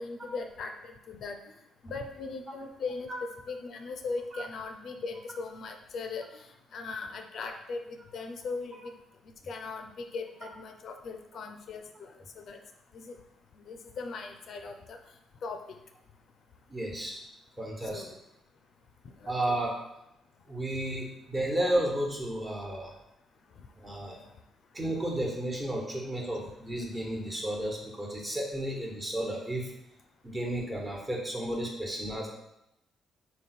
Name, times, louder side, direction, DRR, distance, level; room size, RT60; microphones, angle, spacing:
voice 1, 0.0-1.4 1.8-3.1 3.5-6.5 6.7-8.9 9.5-12.6 12.9-13.2 13.6-15.0 15.4-15.6 17.9-18.1 19.2-19.6, left 4 dB, 60° left, 5 dB, 0.4 m, -39 dB
voice 2, 16.7-17.2 17.6-18.0 19.2-19.7 20.5-22.9 23.8-24.2 24.7-29.7 30.2-32.3, right 1 dB, 25° right, -1 dB, 1.1 m, -32 dB
3.7 x 2.2 x 4.2 m, 0.87 s
hypercardioid pair, 45°, 0 cm